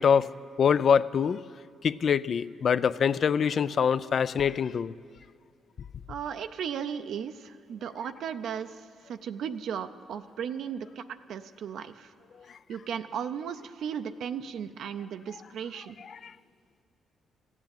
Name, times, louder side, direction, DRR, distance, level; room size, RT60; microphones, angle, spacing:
voice 1, 0.0-1.4 1.8-4.9 16.0-16.3, left 7 dB, 55° left, 17 dB, 0.3 m, -25 dB
voice 2, 6.1-11.0 11.3-12.1 12.7-15.9, right 8 dB, 70° right, 9 dB, 0.5 m, -36 dB
14.5 x 8.1 x 8.9 m, 2.2 s
cardioid pair, 80°, 0 cm